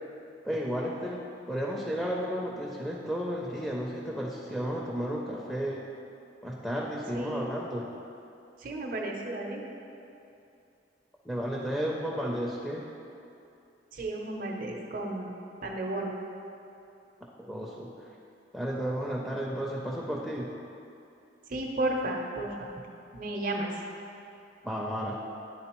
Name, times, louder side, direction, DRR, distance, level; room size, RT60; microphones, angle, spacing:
voice 1, 0.4-1.2 1.5-5.8 6.4-7.9 11.2-12.8 17.5-17.9 18.5-20.5 24.6-25.2, equal, ahead, -4 dB, 0.4 m, -32 dB
voice 2, 7.1-7.5 8.6-9.6 13.9-15.3 15.6-16.1 21.5-22.7 23.1-23.7, right 2 dB, 50° right, 0 dB, 0.6 m, -33 dB
9.5 x 3.7 x 3.0 m, 2.7 s
head